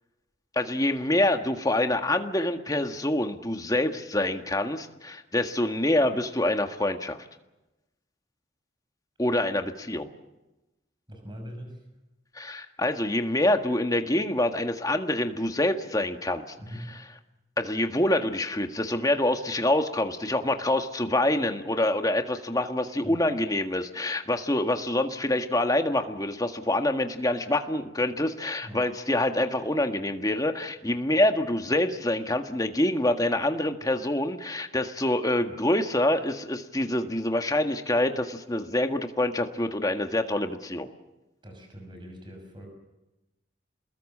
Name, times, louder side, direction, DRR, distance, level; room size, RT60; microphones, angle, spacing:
voice 1, 0.5-7.2 9.2-10.1 12.3-16.4 17.6-40.9, left 1 dB, 20° left, 6 dB, 1.7 m, -26 dB
voice 2, 11.1-11.8 16.6-16.9 22.8-23.2 28.6-28.8 41.4-42.7, equal, 25° right, 3 dB, 6.1 m, -42 dB
28.5 x 21.0 x 7.4 m, 1.0 s
head